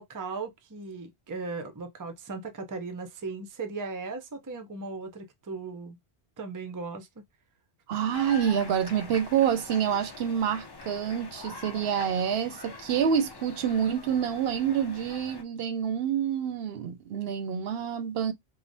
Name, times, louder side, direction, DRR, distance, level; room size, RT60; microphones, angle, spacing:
voice 1, 0.0-6.0 6.4-7.2, right 4 dB, 25° right, 0.5 m, -37 dB
voice 2, 7.9-18.3, right 8 dB, 70° right, 0.8 m, -27 dB
sound 1, 8.1-15.4, left 4 dB, 35° left, 0.4 m, -44 dB
4.9 x 2.0 x 2.6 m
omnidirectional pair, 1.1 m